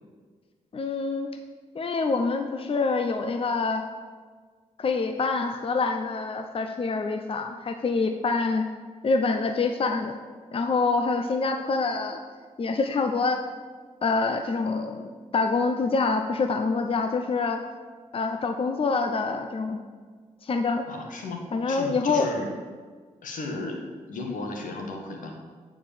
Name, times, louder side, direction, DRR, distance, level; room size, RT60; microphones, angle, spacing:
voice 1, 0.7-1.3 1.7-3.9 4.8-8.7 9.0-10.2 10.5-12.2 12.6-13.4 14.0-17.7 18.1-19.8 20.4-20.9 21.5-22.3, left 4 dB, 45° left, 6 dB, 0.7 m, -26 dB
voice 2, 20.9-22.5 23.2-25.4, left 2 dB, 90° left, 2 dB, 1.6 m, -35 dB
9.2 x 4.7 x 7.1 m, 1.5 s
cardioid pair, 65°, 13 cm